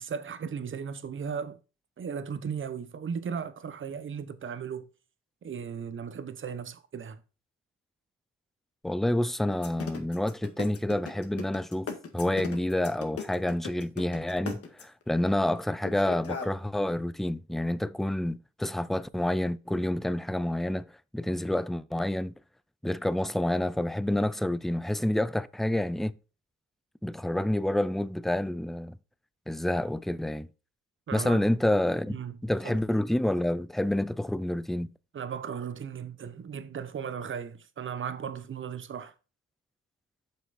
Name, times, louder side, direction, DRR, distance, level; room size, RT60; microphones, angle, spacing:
voice 1, 0.0-1.6 2.0-4.9 5.4-7.2 31.1-31.4 32.1-32.4 32.6-32.8 35.1-39.1, right 7 dB, 40° right, 1.0 m, -36 dB
voice 2, 8.8-20.9 21.1-22.3 22.8-26.1 27.0-29.0 29.5-30.5 31.1-34.9, left 1 dB, ahead, 0.3 m, -28 dB
sound 1, 9.5-15.0 15.8-16.5, left 5 dB, 50° left, 1.8 m, -37 dB
7.6 x 5.8 x 4.2 m
cardioid pair, 90°, 30 cm